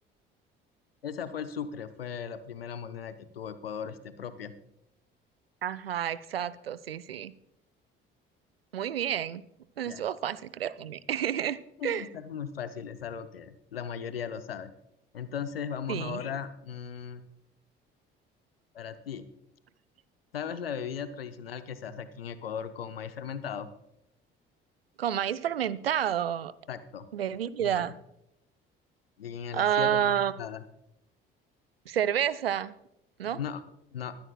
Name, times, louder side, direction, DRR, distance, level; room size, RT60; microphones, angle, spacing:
voice 1, 1.0-4.5 9.9-10.0 11.8-14.7 15.1-17.3 18.7-19.2 20.3-23.7 26.7-27.1 27.6-27.8 29.2-30.6 33.2-33.6 33.9-34.2, left 7 dB, 80° left, 12 dB, 0.7 m, -37 dB
voice 2, 5.6-7.3 8.7-9.4 9.8-12.1 15.9-16.2 25.0-26.5 27.1-27.9 29.5-30.3 31.9-32.7 33.2-33.4, right 10 dB, 85° right, 18 dB, 0.5 m, -29 dB
22.0 x 10.5 x 2.3 m, 0.81 s
figure-of-eight pair, 55°, 29 cm